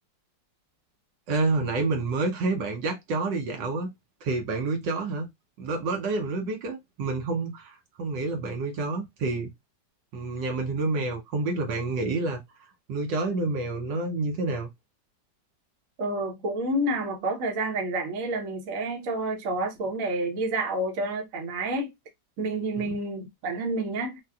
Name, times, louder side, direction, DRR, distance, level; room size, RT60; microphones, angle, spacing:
voice 1, 1.3-3.9 4.2-5.3 5.6-9.5 10.1-12.4 12.9-14.7 22.8-22.9, right 3 dB, 75° right, 1.4 m, -28 dB
voice 2, 16.0-21.9 22.4-24.2, right 2 dB, 55° right, 1.1 m, -29 dB
4.1 x 2.2 x 2.3 m
omnidirectional pair, 2.0 m